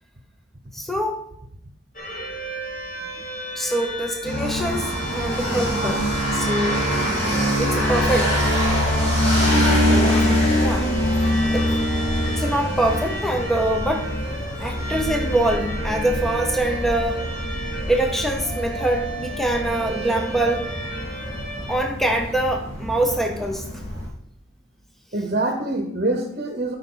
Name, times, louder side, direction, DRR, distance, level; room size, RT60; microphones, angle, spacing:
voice 1, 0.7-1.2 3.5-6.8 7.6-8.3 9.6-10.9 11.5-11.7 12.4-14.1 14.6-17.2 17.9-20.7 21.7-23.6, right 1 dB, ahead, 3 dB, 0.9 m, -24 dB
sound 1, 1.9-21.8, right 2 dB, 40° left, 1.8 m, -33 dB
sound 2, 4.2-24.1, left 1 dB, 55° left, 3.8 m, -24 dB
voice 2, 9.4-10.0 25.1-26.8, right 2 dB, 40° right, 4 dB, 1.1 m, -26 dB
13.5 x 5.5 x 3.9 m, 0.71 s
head